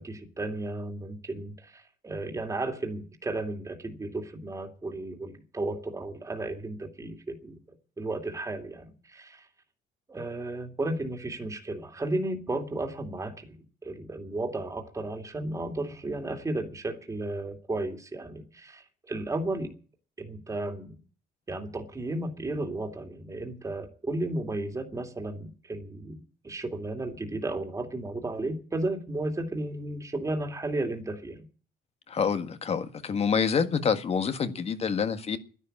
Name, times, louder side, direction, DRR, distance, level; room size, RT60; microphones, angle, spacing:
voice 1, 0.0-7.6 8.0-9.4 10.1-13.5 13.8-19.7 20.2-21.0 21.5-26.2 26.4-31.4, right 2 dB, 20° right, 2.6 m, -34 dB
voice 2, 32.1-35.4, left 6 dB, 35° left, 1.7 m, -27 dB
11.5 x 11.0 x 9.0 m
cardioid pair, 110°, 17 cm